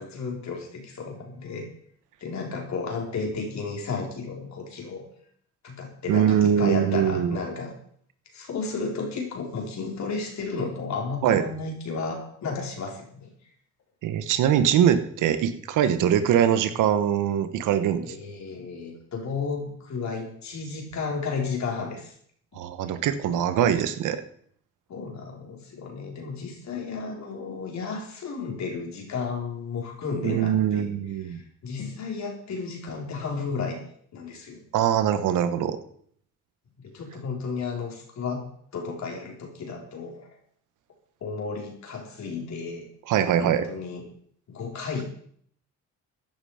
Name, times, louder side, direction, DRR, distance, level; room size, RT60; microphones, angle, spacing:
voice 1, 0.0-1.6 2.2-5.0 5.6-7.8 8.3-13.3 18.1-22.1 24.9-30.9 31.3-33.8 34.1-34.6 36.8-38.5 38.7-40.3 41.2-42.9 43.5-44.0 44.5-45.0, left 4 dB, 65° left, 1 dB, 4.6 m, -33 dB
voice 2, 6.1-7.4 11.2-11.4 14.0-18.1 22.5-24.2 30.2-31.4 34.7-35.8 43.1-43.6, right 9 dB, 85° right, 11 dB, 1.4 m, -22 dB
15.0 x 11.0 x 5.1 m, 0.63 s
cardioid pair, 90°, 30 cm